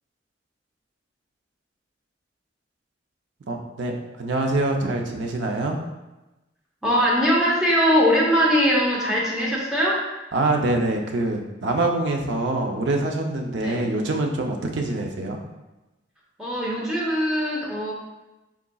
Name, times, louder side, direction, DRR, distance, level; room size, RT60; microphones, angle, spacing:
voice 1, 3.5-5.8 10.3-15.4, right 2 dB, 70° right, 2 dB, 0.5 m, -25 dB
voice 2, 6.8-10.0 13.6-13.8 16.4-17.9, equal, 5° right, -6 dB, 0.7 m, -21 dB
3.9 x 3.6 x 2.3 m, 1.0 s
head